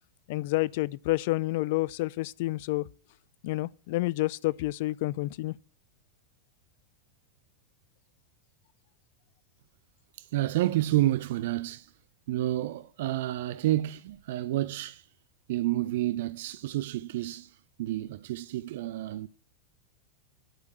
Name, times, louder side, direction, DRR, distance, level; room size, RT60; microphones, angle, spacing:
voice 1, 0.3-2.9 3.4-5.6, left 19 dB, 50° left, 0.5 m, -29 dB
voice 2, 10.2-11.9 12.3-15.1 15.5-19.3, right 15 dB, 55° right, 0.6 m, -29 dB
11.0 x 8.1 x 8.4 m
figure-of-eight pair, 90°, 0 cm